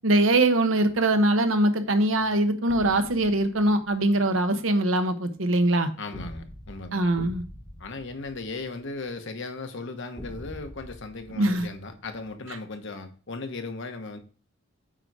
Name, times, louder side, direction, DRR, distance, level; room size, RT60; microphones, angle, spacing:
voice 1, 0.0-5.9 6.9-7.4 11.4-11.7, right 1 dB, 75° right, 8 dB, 1.0 m, -22 dB
sound 1, 2.7-4.1 6.1-9.1 10.2-12.3, left 1 dB, 5° left, 1.0 m, -44 dB
voice 2, 6.0-7.1 7.8-14.2, left 3 dB, 65° left, 6 dB, 1.1 m, -37 dB
8.9 x 3.9 x 4.8 m, 0.39 s
head